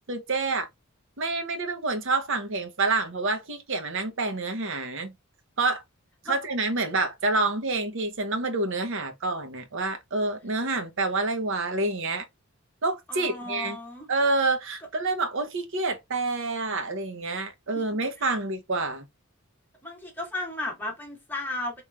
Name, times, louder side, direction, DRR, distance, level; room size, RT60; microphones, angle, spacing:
voice 1, 0.1-0.7 1.2-5.1 5.6-5.8 6.3-12.2 12.8-13.8 14.1-19.0, right 3 dB, 65° right, 0.8 m, -28 dB
voice 2, 13.1-14.1 18.2-18.3 19.8-21.8, left 2 dB, 10° left, 1.2 m, -34 dB
3.1 x 3.1 x 2.2 m
head